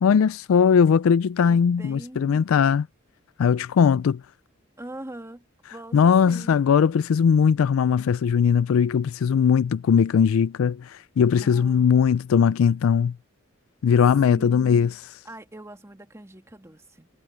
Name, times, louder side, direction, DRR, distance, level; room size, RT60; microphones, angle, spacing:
voice 1, 0.0-2.9 3.4-4.2 5.9-13.1 13.8-14.9, left 7 dB, 90° left, 0.4 m, -19 dB
voice 2, 1.5-2.4 4.8-5.4 5.7-6.6 11.3-12.1 14.3-15.0 15.3-17.1, right 1 dB, 15° right, 1.8 m, -42 dB
head